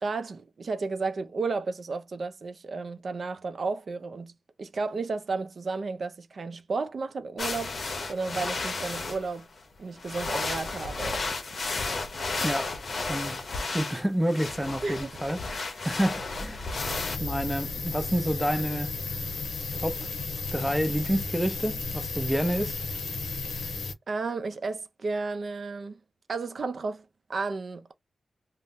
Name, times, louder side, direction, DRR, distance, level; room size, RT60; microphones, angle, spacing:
voice 1, 0.0-4.3 4.6-7.7 8.1-9.5 9.8-11.2 14.8-15.1 24.1-26.0 26.3-27.0 27.3-27.9, right 4 dB, 55° right, 0.5 m, -32 dB
sound 1, 7.4-9.4 10.0-17.2, left 3 dB, 50° left, 0.7 m, -33 dB
voice 2, 13.1-13.4 13.7-15.4 15.8-16.8 17.2-18.9 19.8-20.0 20.5-22.8, equal, 5° right, 0.5 m, -28 dB
sound 2, 16.8-23.9, left 3 dB, 90° left, 0.6 m, -34 dB
2.6 x 2.0 x 3.5 m
wide cardioid pair, 125°, 0 cm